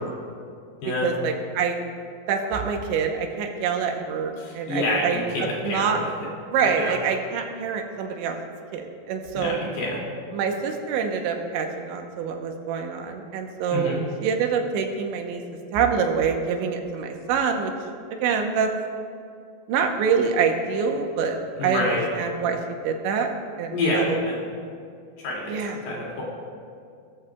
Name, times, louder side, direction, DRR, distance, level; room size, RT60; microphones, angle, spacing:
voice 1, 1.0-1.8 2.3-6.0 6.5-8.4 8.7-9.6 10.3-15.4 15.7-17.7 18.1-18.7 19.7-21.9 22.2-22.6 22.8-23.3 23.6-24.2 25.5-25.8, right 6 dB, 85° right, 3 dB, 3.3 m, -26 dB
voice 2, 4.4-6.0 6.7-6.9 9.3-10.0 13.7-14.0 21.6-22.1 23.7-24.4 25.2-26.2, left 1 dB, 65° left, -4 dB, 4.6 m, -27 dB
19.5 x 13.5 x 2.4 m, 2.3 s
omnidirectional pair, 5.1 m